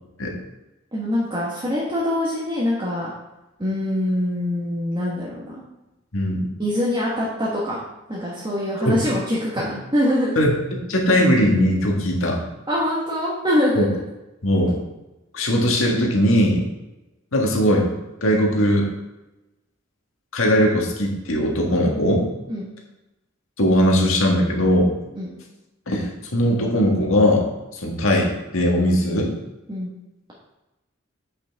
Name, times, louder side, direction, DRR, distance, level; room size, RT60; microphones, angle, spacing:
voice 1, 0.9-3.1 3.6-5.6 6.6-7.8 8.1-10.3 12.7-14.0 22.5-22.7 25.2-25.3 29.7-29.9, left 1 dB, 25° right, -7 dB, 1.3 m, -24 dB
voice 2, 6.1-6.5 8.8-9.0 10.3-12.4 13.7-13.9 14.4-14.8 15.3-16.6 17.3-17.9 18.2-18.9 20.3-22.3 23.6-24.9 25.9-27.5 27.8-29.3, equal, 90° left, 0 dB, 1.7 m, -19 dB
8.1 x 6.0 x 3.5 m, 1.0 s
head